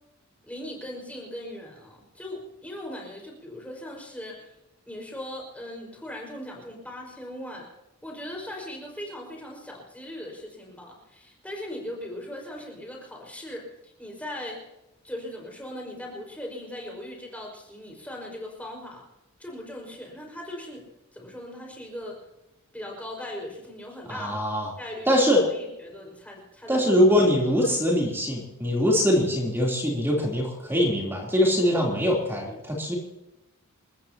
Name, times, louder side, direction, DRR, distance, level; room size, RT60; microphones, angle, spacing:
voice 1, 0.4-4.5 4.9-7.7 8.0-14.6 15.0-19.0 19.4-20.9 21.1-22.2 22.7-24.4 24.8-27.0, left 1 dB, 5° left, 0 dB, 5.3 m, -39 dB
voice 2, 24.1-24.7 25.1-25.4 26.7-32.9, equal, 10° right, -2 dB, 3.4 m, -22 dB
29.0 x 14.5 x 2.9 m, 0.94 s
head